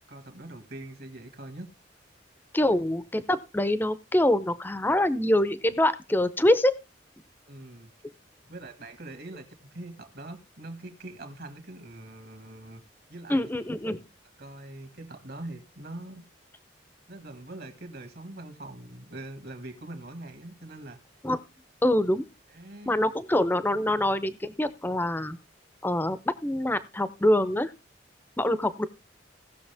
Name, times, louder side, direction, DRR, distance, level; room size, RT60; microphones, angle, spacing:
voice 1, 0.1-1.7 2.6-2.7 7.5-7.9 8.5-12.8 13.1-13.5 14.4-16.2 17.1-21.0 22.5-23.1, right 1 dB, 55° right, 2.0 m, -43 dB
voice 2, 2.5-6.7 13.3-14.0 21.2-21.4 21.8-22.3 22.9-25.4 25.8-27.7 28.4-28.9, left 1 dB, 10° left, 0.6 m, -25 dB
18.0 x 6.5 x 3.4 m
head